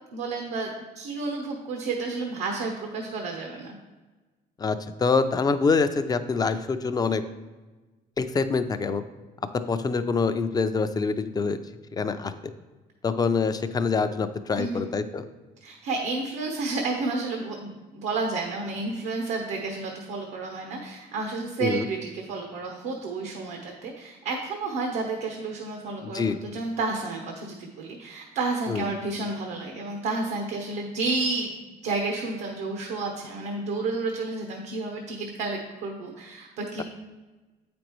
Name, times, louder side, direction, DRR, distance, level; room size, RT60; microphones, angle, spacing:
voice 1, 0.1-0.7 0.9-3.8 14.6-14.8 15.6-31.5 31.8-36.8, right 3 dB, 85° right, 2 dB, 0.9 m, -31 dB
voice 2, 4.6-7.2 8.2-9.0 9.5-11.6 11.9-12.3 13.0-15.2 21.6-21.9 26.0-26.4 28.7-28.8 36.8-36.9, left 4 dB, 25° left, 10 dB, 0.4 m, -25 dB
7.9 x 5.2 x 3.0 m, 1.2 s
cardioid pair, 110°, 17 cm